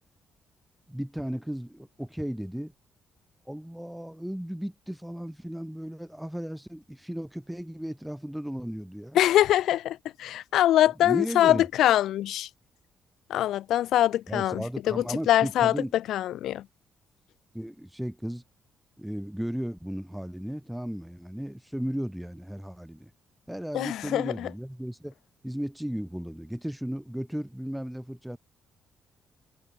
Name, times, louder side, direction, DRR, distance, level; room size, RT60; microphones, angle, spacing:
voice 1, 0.9-2.7 3.5-9.2 11.0-11.7 14.3-15.9 17.5-18.4 19.0-23.1 23.5-25.1 25.4-28.4, equal, 5° right, 1.3 m, -35 dB
voice 2, 9.1-12.5 13.3-15.7 16.1-16.6 23.7-24.5, left 13 dB, 80° left, 0.4 m, -23 dB
cardioid pair, 90°, 0 cm